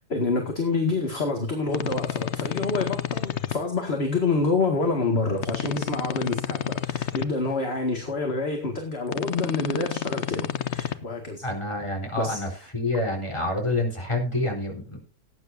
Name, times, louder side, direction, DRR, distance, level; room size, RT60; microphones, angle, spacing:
voice 1, 0.1-11.4 12.2-12.6, left 3 dB, 35° left, 2 dB, 2.2 m, -27 dB
sound 1, 1.7-3.5 5.4-7.2 9.1-10.9, left 9 dB, 50° left, 0.9 m, -30 dB
voice 2, 11.4-12.5 12.7-15.0, left 2 dB, 15° left, 0 dB, 4.2 m, -27 dB
18.5 x 9.7 x 2.7 m, 0.37 s
omnidirectional pair, 1.8 m